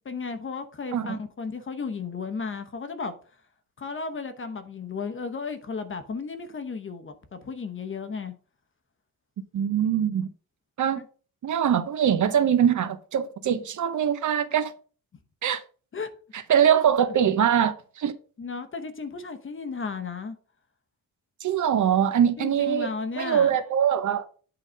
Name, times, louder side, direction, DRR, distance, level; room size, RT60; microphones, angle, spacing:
voice 1, 0.1-3.1 3.8-8.3 11.0-11.1 15.9-16.1 16.7-16.8 17.1-17.2 18.4-20.4 22.4-23.5, left 5 dB, 35° left, 0.9 m, -34 dB
voice 2, 9.5-10.3 10.8-11.0 11.4-14.7 15.4-15.6 16.3-18.1 21.4-22.9 23.2-24.3, right 9 dB, 60° right, 0.8 m, -23 dB
8.7 x 3.9 x 5.1 m
wide cardioid pair, 145°, 35 cm